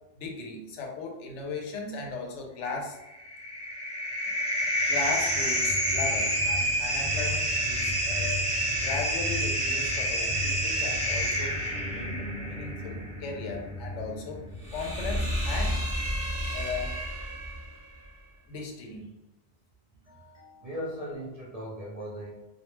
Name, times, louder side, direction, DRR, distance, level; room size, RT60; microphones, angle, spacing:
voice 1, 0.2-3.0 4.9-8.5 8.8-11.6 11.9-14.4 14.7-15.8 16.5-16.9 18.5-19.1, left 4 dB, 90° left, 1 dB, 0.9 m, -37 dB
sound 1, 3.1-17.6, equal, 10° left, 0.3 m, -29 dB
voice 2, 20.1-22.3, equal, 50° right, -5 dB, 0.5 m, -38 dB
2.3 x 2.2 x 3.0 m, 0.94 s
omnidirectional pair, 1.2 m